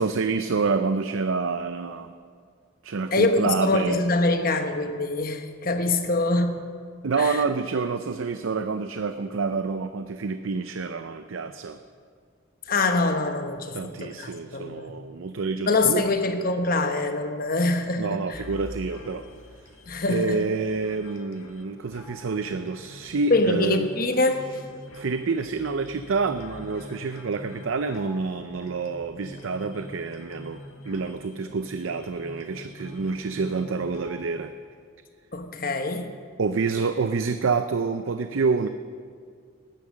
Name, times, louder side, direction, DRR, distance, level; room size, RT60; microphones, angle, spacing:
voice 1, 0.0-2.1 2.8-4.0 7.0-11.8 13.7-16.0 18.0-19.3 20.1-23.9 24.9-30.6 30.9-34.5 36.4-38.7, right 4 dB, 75° right, 9 dB, 0.5 m, -27 dB
voice 2, 3.1-6.7 7.1-7.4 12.7-14.9 15.7-18.4 19.9-20.4 23.3-24.6 35.3-36.1, left 2 dB, 45° left, 6 dB, 1.1 m, -24 dB
sound 1, 18.3-34.3, left 1 dB, 80° left, 1.5 m, -45 dB
18.5 x 9.8 x 6.3 m, 2.1 s
head